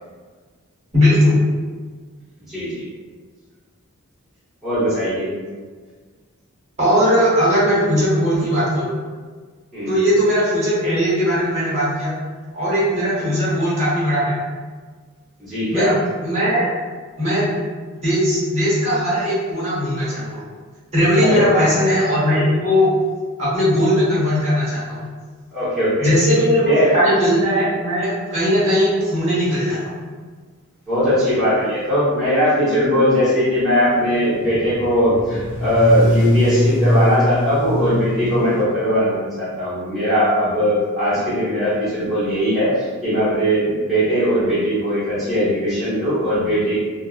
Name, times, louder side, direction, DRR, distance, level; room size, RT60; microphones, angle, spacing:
voice 1, 0.9-1.4 6.8-9.0 9.9-12.1 12.5-14.4 15.7-16.7 17.2-17.5 18.0-20.4 20.9-22.9 23.4-25.1 26.0-30.0, equal, 30° right, -9 dB, 0.9 m, -18 dB
voice 2, 2.5-2.8 4.6-5.3 9.7-10.0 15.4-16.0 21.2-21.7 25.5-26.1 26.6-26.9 30.9-46.8, equal, ahead, -15 dB, 1.0 m, -19 dB
sound 1, 33.6-38.6, equal, 55° left, 0.5 m, -22 dB
2.5 x 2.2 x 2.4 m, 1.5 s
head